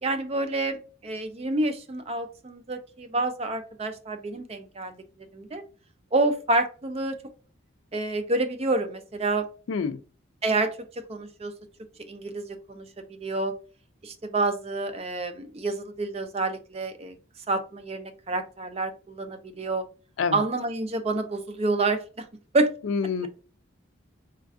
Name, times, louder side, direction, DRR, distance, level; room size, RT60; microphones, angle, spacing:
voice 1, 0.0-5.0 5.3-5.6 6.1-7.2 7.9-9.5 10.4-11.5 12.1-12.9 13.2-13.5 14.0-17.2 17.5-19.9 20.3-22.3 22.5-22.7, right 2 dB, 30° right, 0.4 m, -28 dB
voice 2, 9.7-10.0 20.2-20.4 22.8-23.3, left 5 dB, 85° left, 0.4 m, -27 dB
4.3 x 2.4 x 2.5 m
head